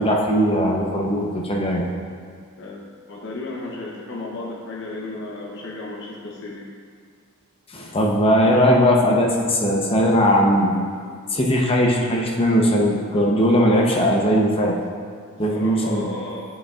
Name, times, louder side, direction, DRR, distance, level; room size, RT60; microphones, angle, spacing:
voice 1, 0.0-1.8 7.7-10.7 11.3-14.8 15.4-16.1, equal, 25° left, -1 dB, 0.7 m, -19 dB
voice 2, 3.1-6.7 15.5-16.4, left 2 dB, 55° left, -4 dB, 0.8 m, -34 dB
9.7 x 5.2 x 2.4 m, 2.1 s
head